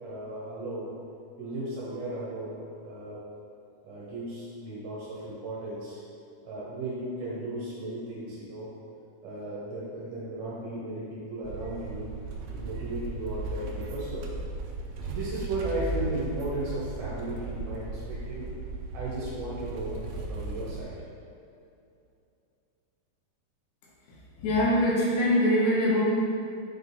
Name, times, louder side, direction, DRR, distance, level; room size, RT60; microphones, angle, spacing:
voice 1, 0.0-0.9 1.4-3.2 3.8-6.0 6.4-8.7 9.2-12.1 12.5-14.4 15.1-18.5 18.9-20.0 20.3-20.9, right 2 dB, 65° right, -8 dB, 2.8 m, -35 dB
sound 1, 11.4-20.8, right 2 dB, 85° right, 2.2 m, -36 dB
voice 2, 24.4-26.0, left 1 dB, 80° left, -4 dB, 3.1 m, -23 dB
8.1 x 3.8 x 4.1 m, 2.6 s
omnidirectional pair, 5.2 m